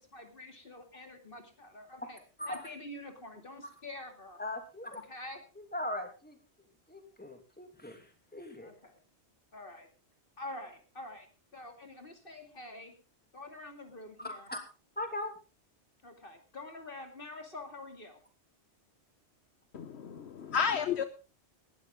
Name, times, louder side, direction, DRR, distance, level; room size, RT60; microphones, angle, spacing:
voice 1, 0.1-2.2 2.5-4.4 4.9-5.4 8.6-9.0 9.5-9.9 10.4-11.3 11.5-12.9 13.3-14.5 16.0-18.3, left 2 dB, 50° left, 5 dB, 2.7 m, -46 dB
voice 2, 4.4-5.0 5.7-6.3 6.9-8.0 8.3-8.7 14.2-14.6 15.0-15.3, left 1 dB, 10° left, 5 dB, 2.7 m, -39 dB
voice 3, 19.7-21.0, left 6 dB, 70° left, 10 dB, 1.2 m, -31 dB
18.5 x 12.5 x 3.7 m, 0.32 s
omnidirectional pair, 1.1 m